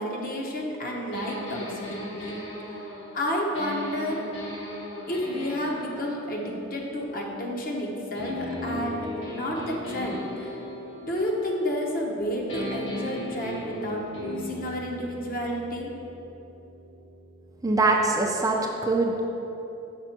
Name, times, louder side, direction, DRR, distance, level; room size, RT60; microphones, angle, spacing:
voice 1, 0.0-2.4 3.1-4.2 5.1-10.6 11.1-15.9, equal, 45° left, -1 dB, 0.9 m, -30 dB
sound 1, 1.1-7.7 8.1-12.2 12.5-18.2, left 1 dB, 65° left, 1.4 m, -38 dB
voice 2, 17.6-19.3, right 2 dB, 15° right, 0 dB, 0.4 m, -23 dB
6.0 x 4.3 x 5.8 m, 2.9 s
head